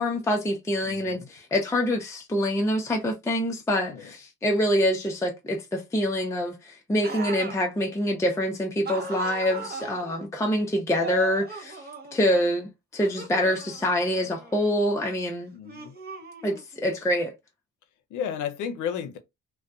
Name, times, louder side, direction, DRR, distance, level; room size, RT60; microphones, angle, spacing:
voice 1, 0.0-11.8 12.1-15.5 16.4-17.3, equal, 10° left, 0.5 m, -26 dB
voice 2, 0.8-1.3 3.9-4.0 15.5-15.9 18.1-19.2, left 8 dB, 80° left, 0.6 m, -33 dB
sound 1, 7.0-7.7 8.8-10.2 11.0-12.5 13.0-14.7 15.6-16.8, right 3 dB, 30° right, 0.7 m, -38 dB
2.5 x 2.2 x 2.3 m
cardioid pair, 90°, 30 cm